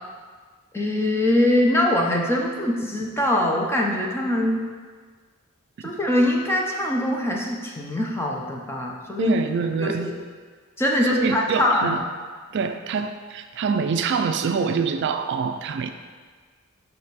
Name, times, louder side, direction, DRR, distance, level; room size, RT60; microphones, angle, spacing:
voice 1, 0.7-4.6 5.8-9.3 9.8-10.1 10.8-12.0, left 1 dB, 10° left, -1 dB, 0.8 m, -22 dB
voice 2, 9.2-10.1 11.1-12.0 12.5-15.9, right 5 dB, 60° right, 7 dB, 0.4 m, -25 dB
6.5 x 5.4 x 4.1 m, 1.5 s
head